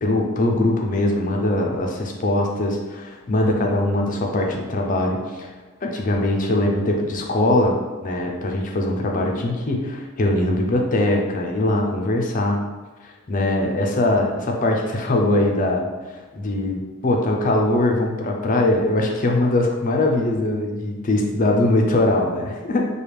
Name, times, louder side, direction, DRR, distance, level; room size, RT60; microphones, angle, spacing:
voice 1, 0.0-5.5 5.8-12.6 13.0-22.9, left 1 dB, 40° left, 1 dB, 0.5 m, -21 dB
4.7 x 2.3 x 3.3 m, 1.3 s
head